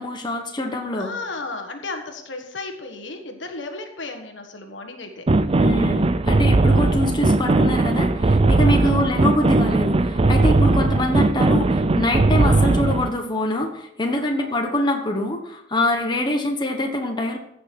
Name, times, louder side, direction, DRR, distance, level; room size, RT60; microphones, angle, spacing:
voice 1, 0.0-1.1 5.6-17.4, left 1 dB, 25° left, 2 dB, 1.2 m, -24 dB
voice 2, 1.0-5.3 8.8-9.2 10.6-10.9 14.4-14.7, left 3 dB, 75° left, 5 dB, 1.5 m, -34 dB
sound 1, 5.3-13.1, right 2 dB, 30° right, 0.5 m, -18 dB
15.5 x 6.1 x 4.7 m, 0.79 s
head